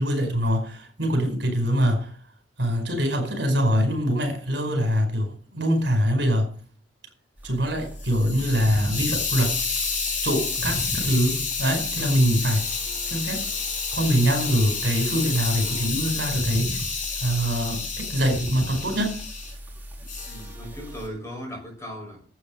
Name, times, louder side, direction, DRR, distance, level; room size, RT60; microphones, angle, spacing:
voice 1, 0.0-2.1 2.6-6.5 7.4-9.6 10.2-12.7 13.0-13.5 13.9-16.8 17.2-19.2, equal, 70° right, 5.0 m, -24 dB
sound 1, 7.4-21.1, equal, 10° right, 3.5 m, -37 dB
Hiss, 7.8-19.5 20.1-20.4, left 5 dB, 50° left, 6.5 m, -30 dB
voice 2, 20.2-22.2, equal, 15° left, 6.7 m, -37 dB
11.5 x 8.6 x 6.4 m
head